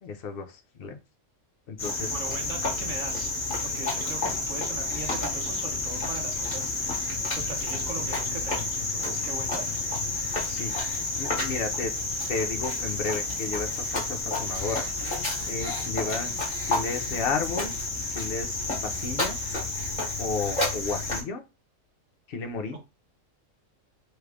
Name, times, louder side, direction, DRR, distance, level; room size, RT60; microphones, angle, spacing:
voice 1, 0.0-1.0 1.7-2.2 10.5-11.9 12.3-14.9 15.5-16.3 16.7-17.7 18.1-19.4 20.2-21.4 22.3-22.8, left 4 dB, 55° left, 6 dB, 0.7 m, -33 dB
Cricket, 1.8-21.2, left 2 dB, 35° left, 1.2 m, -30 dB
voice 2, 2.0-3.3 3.6-9.6, right 4 dB, 65° right, 1 dB, 1.4 m, -40 dB
3.3 x 2.4 x 3.3 m, 0.27 s
omnidirectional pair, 1.5 m